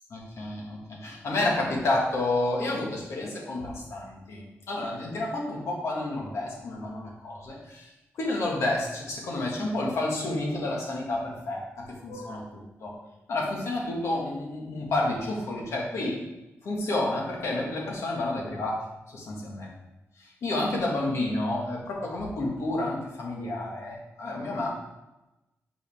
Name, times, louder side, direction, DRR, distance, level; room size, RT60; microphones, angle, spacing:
voice 1, 0.1-7.9 8.2-12.9 13.3-16.2 16.6-18.8 19.1-19.7 20.2-24.7, left 2 dB, 65° left, -2 dB, 1.9 m, -30 dB
7.8 x 5.2 x 3.6 m, 0.99 s
wide cardioid pair, 165°, 5 cm